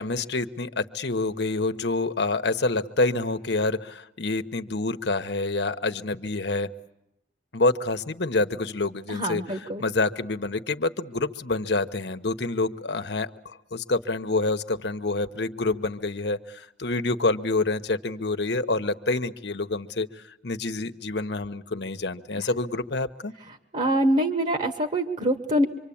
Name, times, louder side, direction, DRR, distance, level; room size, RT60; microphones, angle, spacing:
voice 1, 0.0-6.7 7.5-23.3, left 3 dB, 70° left, 9 dB, 1.1 m, -27 dB
voice 2, 9.1-9.8 23.7-25.6, right 1 dB, 40° right, 7 dB, 1.5 m, -24 dB
25.5 x 24.5 x 8.7 m, 0.84 s
head